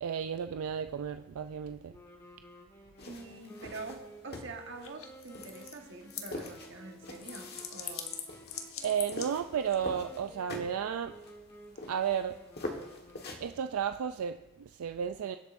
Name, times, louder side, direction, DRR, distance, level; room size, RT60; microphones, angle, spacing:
voice 1, 0.0-1.9 8.8-11.1 11.9-12.4 13.4-15.4, right 8 dB, 85° right, 8 dB, 0.4 m, -33 dB
sound 1, 1.9-13.8, equal, 15° left, 1.6 m, -54 dB
sound 2, 3.0-13.6, left 2 dB, 50° left, 1.4 m, -45 dB
voice 2, 3.0-8.2, right 3 dB, 55° right, 3 dB, 1.4 m, -45 dB
sound 3, 4.8-6.6 6.9-9.8, left 8 dB, 70° left, 1.2 m, -43 dB
24.0 x 8.1 x 2.6 m, 1.0 s
head